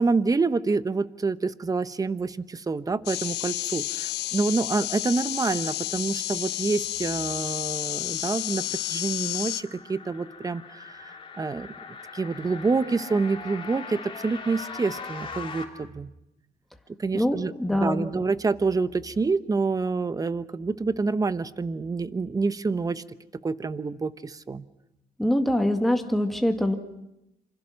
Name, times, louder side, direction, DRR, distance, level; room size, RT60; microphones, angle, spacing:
voice 1, 0.0-11.7 12.1-16.1 17.0-23.0 23.4-24.6, right 4 dB, 20° right, 14 dB, 1.0 m, -27 dB
sound 1, 3.1-9.6, left 17 dB, 90° left, 0.9 m, -31 dB
sound 2, 7.3-15.6, left 5 dB, 30° left, 3.6 m, -41 dB
voice 2, 17.1-18.0 25.2-26.8, left 1 dB, ahead, 4 dB, 1.8 m, -24 dB
27.5 x 26.0 x 6.4 m, 0.88 s
cardioid pair, 110°, 17 cm